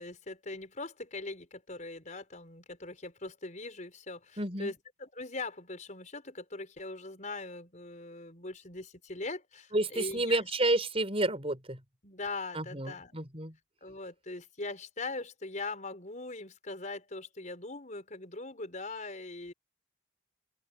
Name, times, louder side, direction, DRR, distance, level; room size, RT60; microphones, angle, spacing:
voice 1, 0.0-10.4 12.0-13.1 13.8-19.5, left 3 dB, 40° left, 5.5 m, -41 dB
voice 2, 4.4-4.7 9.7-11.8 12.5-13.5, right 2 dB, 30° right, 6.3 m, -30 dB
open air
head